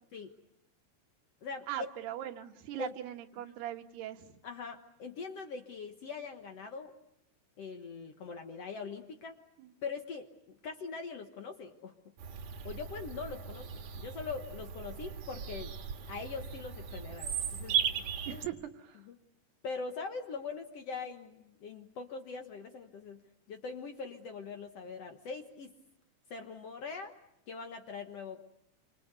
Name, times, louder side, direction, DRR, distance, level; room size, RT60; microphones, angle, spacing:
voice 1, 1.7-4.4 9.6-9.7 18.3-19.0, right 11 dB, 90° right, 5 dB, 3.5 m, -40 dB
voice 2, 4.4-6.9 7.6-9.4 9.8-11.9 12.6-15.8 16.1-17.8 18.3-18.5 19.1-19.2 19.6-23.2 23.5-25.7 26.3-27.1 27.5-28.4, left 5 dB, 60° left, 5 dB, 1.7 m, -42 dB
Bird vocalization bird call bird song, 12.2-18.5, right 8 dB, 55° right, 2.5 m, -37 dB
28.0 x 26.0 x 8.2 m, 0.82 s
omnidirectional pair, 4.5 m